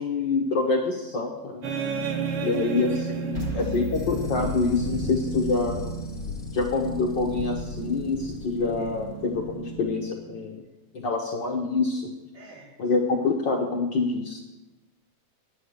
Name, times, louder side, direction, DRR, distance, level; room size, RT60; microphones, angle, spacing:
voice 1, 0.0-1.6 2.4-5.8 6.5-10.6 10.9-12.1 12.8-14.4, left 3 dB, 70° left, 0 dB, 1.1 m, -26 dB
sound 1, 1.6-10.5, right 5 dB, 60° right, 1.7 m, -34 dB
voice 2, 2.1-2.7 3.4-3.8 8.6-8.9 12.3-12.7, right 2 dB, 80° right, -7 dB, 6.7 m, -51 dB
sound 2, 3.3-5.4, left 3 dB, 20° right, 2.1 m, -37 dB
sound 3, 3.9-9.8, left 5 dB, 50° left, 0.6 m, -37 dB
10.5 x 9.6 x 6.4 m, 1.1 s
omnidirectional pair, 3.6 m